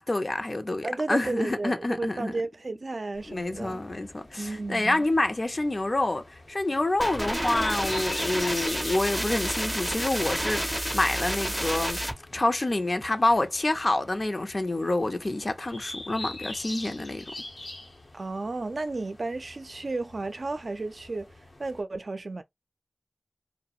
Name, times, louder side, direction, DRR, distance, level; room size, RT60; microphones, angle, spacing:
voice 1, 0.0-2.3 3.3-12.0 12.3-17.3, left 2 dB, 55° left, 0.5 m, -27 dB
voice 2, 0.8-3.8 4.3-5.0 18.1-21.3 21.6-22.4, right 3 dB, 75° right, 0.3 m, -33 dB
sound 1, 3.1-21.8, left 2 dB, 90° left, 0.9 m, -45 dB
sound 2, 7.0-12.1, equal, 5° right, 0.5 m, -29 dB
2.3 x 2.1 x 2.6 m
wide cardioid pair, 55°, 0 cm